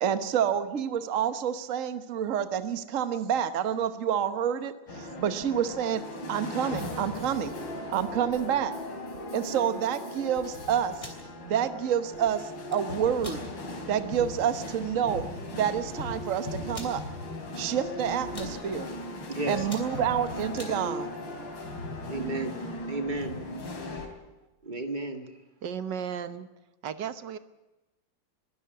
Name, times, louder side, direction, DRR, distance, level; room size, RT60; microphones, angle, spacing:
voice 1, 0.0-6.0 6.3-7.5 7.9-8.7 9.3-11.0 11.4-13.4 13.9-15.2 15.5-17.0 17.5-18.9 19.5-21.1, right 9 dB, 50° right, 11 dB, 1.3 m, -28 dB
sound 1, 4.9-24.1, left 1 dB, 80° left, 3.8 m, -38 dB
sound 2, 10.9-11.2 12.5-12.8 13.2-13.4 13.9-14.0 14.4-14.6 15.4-15.5 15.7-15.8 16.7-17.0 17.6-17.9 18.2-18.5 19.1-19.3 19.6-20.8, left 1 dB, 15° left, 3.6 m, -43 dB
voice 2, 19.3-19.6 22.1-22.6 22.9-23.4 24.6-25.2, right 2 dB, 25° right, 7 dB, 2.2 m, -32 dB
voice 3, 25.6-26.5 26.8-27.4, right 8 dB, 70° right, 13 dB, 1.7 m, -34 dB
22.0 x 12.5 x 9.6 m, 1.0 s
omnidirectional pair, 2.1 m